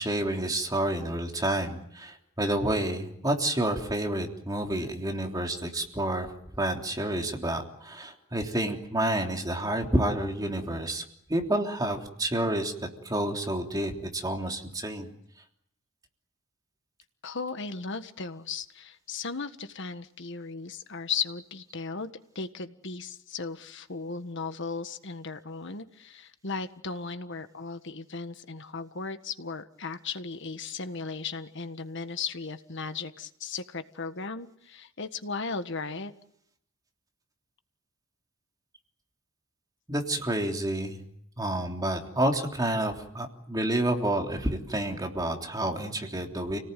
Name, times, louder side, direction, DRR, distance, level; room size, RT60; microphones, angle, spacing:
voice 1, 0.0-11.0 11.3-12.7 13.0-15.1 39.9-41.0 41.4-46.6, right 1 dB, 20° right, 2 dB, 3.3 m, -29 dB
voice 2, 17.2-36.1, left 4 dB, 60° left, 9 dB, 1.6 m, -36 dB
29.5 x 19.0 x 9.3 m, 0.73 s
head